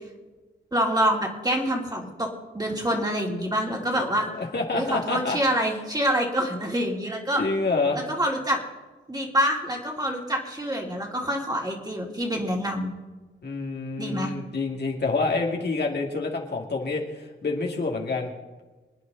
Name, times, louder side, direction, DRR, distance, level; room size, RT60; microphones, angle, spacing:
voice 1, 0.7-2.3 2.5-4.2 4.7-7.4 7.9-8.6 9.1-12.9 14.0-14.3, equal, 20° right, -1 dB, 3.1 m, -26 dB
voice 2, 4.4-5.4 7.4-8.0 13.4-18.3, left 3 dB, 55° left, 0 dB, 2.3 m, -27 dB
25.5 x 9.4 x 3.9 m, 1.2 s
cardioid pair, 75°, 20 cm